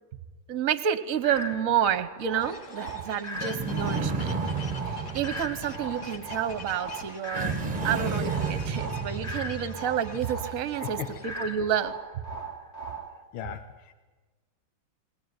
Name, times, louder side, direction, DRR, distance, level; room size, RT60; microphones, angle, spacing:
voice 1, 0.5-4.4 4.9-11.9, right 9 dB, 50° right, 13 dB, 1.2 m, -29 dB
sound 1, 1.2-13.2, right 2 dB, 20° left, 2.0 m, -39 dB
sound 2, 2.4-11.3, left 3 dB, 50° left, 2.0 m, -45 dB
sound 3, 3.3-6.4 7.3-10.0, right 4 dB, 30° right, 0.9 m, -32 dB
voice 2, 10.8-11.4 13.3-13.9, left 9 dB, 75° left, 8 dB, 1.8 m, -38 dB
21.0 x 18.5 x 9.5 m, 1.3 s
omnidirectional pair, 2.3 m